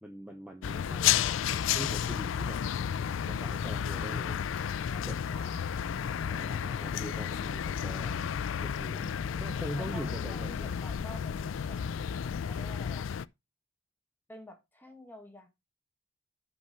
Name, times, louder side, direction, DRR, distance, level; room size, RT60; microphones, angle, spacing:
voice 1, 0.0-2.6 3.2-4.4 5.0-5.2 6.3-8.3 8.6-9.0 9.4-10.7, equal, 5° right, 0.8 m, -43 dB
sound 1, 0.6-13.2, left 8 dB, 70° left, 0.4 m, -32 dB
voice 2, 9.8-11.8 12.4-13.1 14.3-15.5, left 1 dB, 10° left, 1.7 m, -50 dB
6.2 x 5.6 x 5.4 m
head